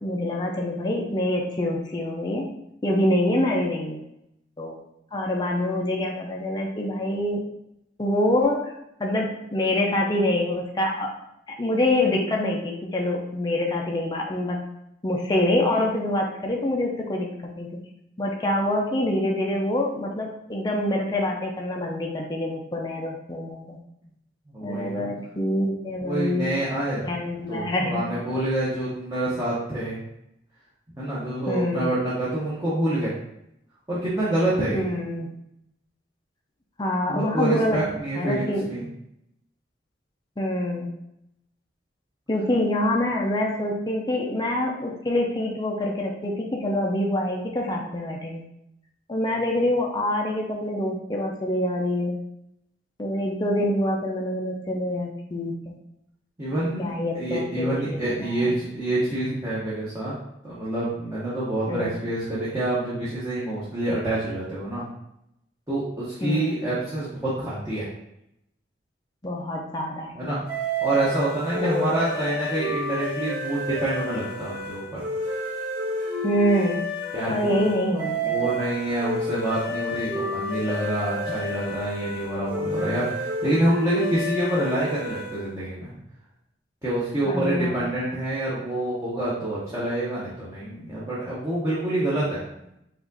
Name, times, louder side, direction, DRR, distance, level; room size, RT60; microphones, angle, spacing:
voice 1, 0.0-2.5 2.8-4.0 4.6-4.7 5.1-7.4 8.0-8.7 9.0-11.1 11.5-14.6 15.0-17.8 18.2-23.8 24.6-26.5 27.0-28.0 31.5-31.9 34.7-35.3 36.8-37.8 38.2-38.7 40.4-40.9 42.3-48.4 49.1-52.2 53.0-55.8 56.8-58.5 61.7-62.0 66.2-66.5 69.2-70.3 71.5-72.1 76.2-76.8 77.3-78.5 87.3-87.8, left 1 dB, 20° left, -1 dB, 0.5 m, -26 dB
voice 2, 24.5-25.1 26.0-27.1 27.5-30.0 31.0-33.1 33.9-34.9 37.1-38.9 56.4-60.2 60.4-64.8 65.7-67.9 70.1-70.4 70.8-75.0 77.1-77.6 78.1-86.0 86.8-92.4, right 1 dB, 15° right, -10 dB, 1.0 m, -27 dB
sound 1, 70.5-85.5, equal, 50° right, 1.4 m, -30 dB
4.9 x 2.5 x 3.9 m, 0.80 s
head